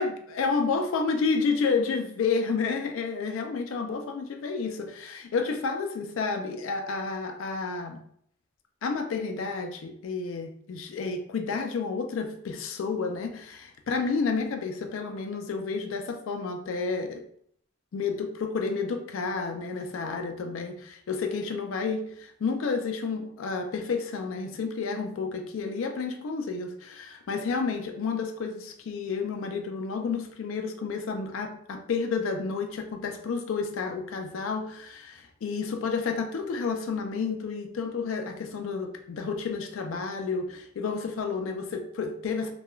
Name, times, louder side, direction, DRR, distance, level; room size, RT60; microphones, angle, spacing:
voice 1, 0.0-8.0 8.8-17.2 17.9-42.5, left 4 dB, 75° left, 5 dB, 0.4 m, -30 dB
3.0 x 2.2 x 2.2 m, 0.65 s
head